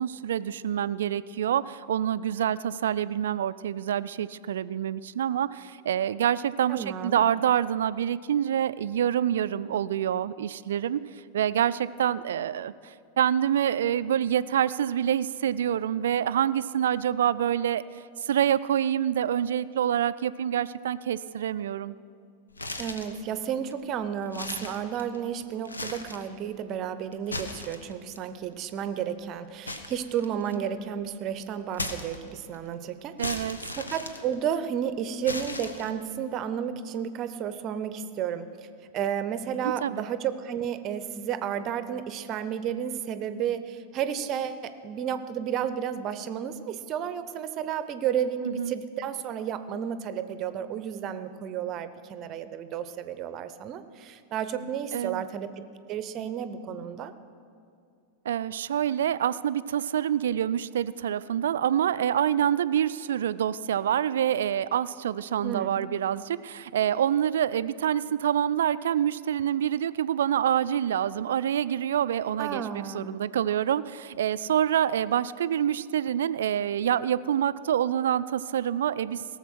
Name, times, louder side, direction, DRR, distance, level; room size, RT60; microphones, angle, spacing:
voice 1, 0.0-11.0 11.3-17.8 18.2-21.9 33.2-33.6 39.6-40.0 48.4-48.7 54.9-55.3 58.3-79.4, right 10 dB, 60° right, 16 dB, 0.3 m, -26 dB
voice 2, 6.7-7.2 22.8-33.5 33.8-38.7 38.9-57.1 65.4-65.7 72.4-73.1, right 8 dB, 35° right, 12 dB, 0.7 m, -32 dB
sound 1, 22.5-23.2 23.7-23.8 24.2-25.3 25.6-26.3 27.1-28.2 29.6-30.7 31.7-32.5 33.2-34.7 35.2-36.1, left 2 dB, 75° left, 0.9 m, -37 dB
17.0 x 7.2 x 6.2 m, 2.4 s
figure-of-eight pair, 90°, 0 cm